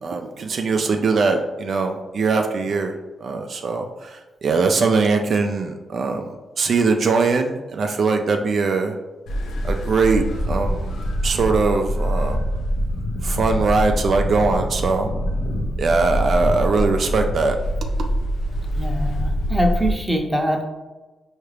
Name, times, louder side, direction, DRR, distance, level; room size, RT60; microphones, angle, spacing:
voice 1, 0.0-2.9 3.2-9.0 9.6-10.9 11.2-12.4 13.2-15.1 15.8-17.6, right 4 dB, 60° right, 4 dB, 0.3 m, -21 dB
sound 1, 9.3-19.9, equal, 90° left, 0.5 m, -24 dB
voice 2, 18.7-20.6, equal, 5° right, 1 dB, 0.6 m, -23 dB
4.4 x 2.4 x 3.3 m, 1.2 s
cardioid pair, 90°, 0 cm